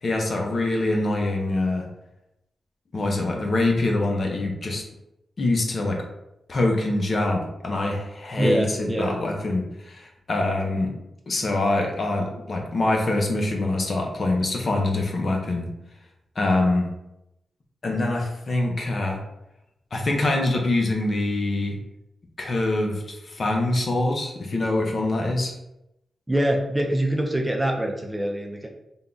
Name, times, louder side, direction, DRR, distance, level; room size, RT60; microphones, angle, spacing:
voice 1, 0.0-1.9 2.9-4.8 5.4-6.0 6.5-10.9 11.3-15.7 16.4-16.9 17.8-19.2 19.9-21.8 22.4-25.5, left 2 dB, 50° left, 1 dB, 0.8 m, -24 dB
voice 2, 8.4-9.1 26.3-28.7, right 1 dB, 15° right, 1 dB, 0.5 m, -24 dB
3.6 x 2.3 x 3.8 m, 0.87 s
cardioid pair, 80°, 0 cm